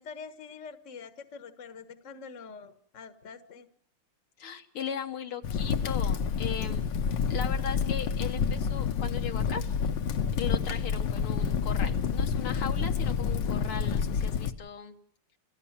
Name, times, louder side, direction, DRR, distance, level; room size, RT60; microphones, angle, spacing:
voice 1, 0.0-3.7, left 5 dB, 40° left, 9 dB, 1.4 m, -45 dB
voice 2, 4.4-6.9 7.3-9.6 10.3-15.0, left 7 dB, 80° left, 5 dB, 2.3 m, -38 dB
Crackle, 5.4-14.5, left 6 dB, 60° left, 1.6 m, -28 dB
29.0 x 14.5 x 7.3 m, 0.66 s
omnidirectional pair, 2.4 m